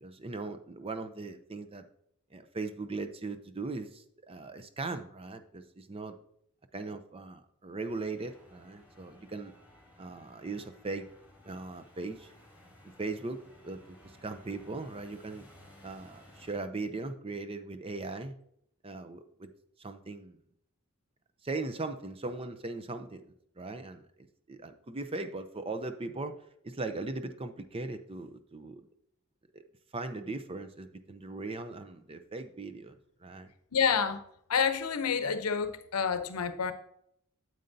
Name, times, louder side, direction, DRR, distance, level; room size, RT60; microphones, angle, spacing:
voice 1, 0.0-1.9 2.3-6.2 6.7-9.5 10.0-11.1 11.4-12.3 12.8-15.5 15.8-18.4 18.8-19.5 19.8-20.4 21.4-26.4 26.6-28.9 29.5-29.6 29.9-33.5, right 3 dB, 25° right, 0.5 m, -39 dB
sound 1, 7.8-16.6, left 1 dB, 5° right, 3.4 m, -57 dB
voice 2, 33.7-34.2 34.5-36.7, left 6 dB, 85° left, 0.7 m, -28 dB
8.9 x 7.8 x 2.7 m
head